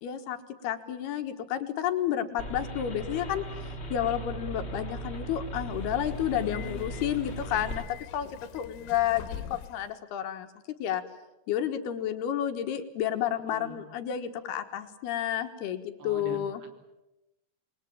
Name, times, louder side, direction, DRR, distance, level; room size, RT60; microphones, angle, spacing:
voice 1, 0.0-0.4 0.6-3.4 3.9-10.5 10.8-11.0 11.5-16.6, left 10 dB, 70° left, 8 dB, 3.2 m, -31 dB
sound 1, 2.4-7.8, right 1 dB, 35° left, 1.0 m, -38 dB
Subway metro underground, 5.7-9.9, left 11 dB, 85° left, 3.4 m, -44 dB
voice 2, 13.5-13.8 16.0-16.7, right 4 dB, 80° right, 5 dB, 5.6 m, -43 dB
27.5 x 21.5 x 8.9 m, 0.97 s
omnidirectional pair, 5.1 m